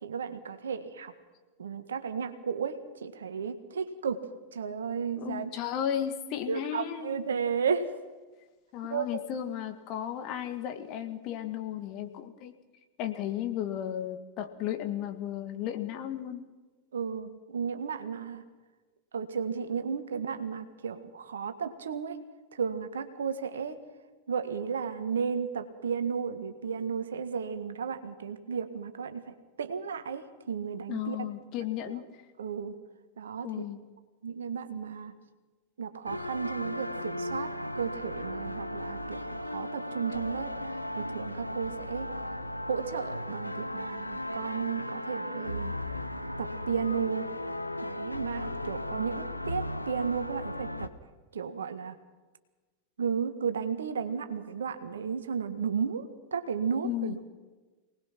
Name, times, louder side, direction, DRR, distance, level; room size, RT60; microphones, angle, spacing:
voice 1, 0.0-1.1 1.6-4.2 4.5-5.5 6.5-7.9 8.9-9.2 16.9-18.4 19.1-22.2 22.5-23.8 24.3-31.2 31.9-32.0 32.4-32.8 33.2-33.5 34.2-35.1 35.8-40.6 41.0-42.1 42.6-45.7 46.4-47.3 47.8-50.9 51.3-52.0 53.0-57.2, right 6 dB, 65° right, 9 dB, 1.6 m, -33 dB
voice 2, 5.2-7.2 8.7-12.5 13.0-16.4 30.9-32.0 33.4-33.8 56.8-57.2, left 10 dB, 40° left, 8 dB, 2.0 m, -34 dB
sound 1, 36.0-50.9, left 1 dB, 85° left, 0.9 m, -36 dB
24.0 x 19.5 x 6.1 m, 1.2 s
figure-of-eight pair, 90°, 0 cm